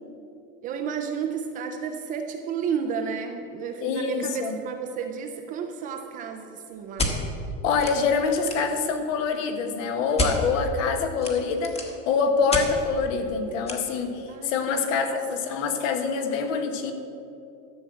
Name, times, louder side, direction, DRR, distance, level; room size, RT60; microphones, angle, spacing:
voice 1, 0.6-7.1 11.2-11.5 14.3-15.2, right 6 dB, 20° right, 4 dB, 0.3 m, -32 dB
voice 2, 3.8-4.6 7.6-16.9, left 5 dB, 75° left, 6 dB, 1.5 m, -25 dB
sound 1, 7.0-7.1 7.8-7.9 8.2-8.7 10.2-10.3 11.2-12.0 12.5-12.7 13.7-13.8, left 1 dB, 15° left, 1.1 m, -27 dB
12.5 x 6.3 x 8.1 m, 2.7 s
supercardioid pair, 170°, 40 cm